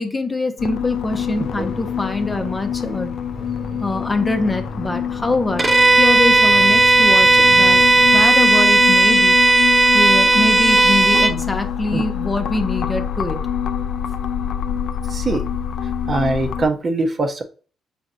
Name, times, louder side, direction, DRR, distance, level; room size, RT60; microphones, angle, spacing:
voice 1, 0.0-3.2 3.8-5.6 6.0-7.8 8.1-9.4 9.9-13.4, left 2 dB, 20° left, 6 dB, 0.7 m, -23 dB
sound 1, 0.6-16.7, left 8 dB, 70° left, 0.4 m, -26 dB
sound 2, 1.1-8.3, left 2 dB, 5° right, 1.4 m, -36 dB
Bowed string instrument, 5.6-11.4, right 2 dB, 20° right, 0.5 m, -14 dB
voice 2, 15.1-15.4 15.8-17.4, right 2 dB, 40° right, 6 dB, 0.9 m, -22 dB
4.9 x 4.2 x 2.5 m, 0.39 s
cardioid pair, 90°, 0 cm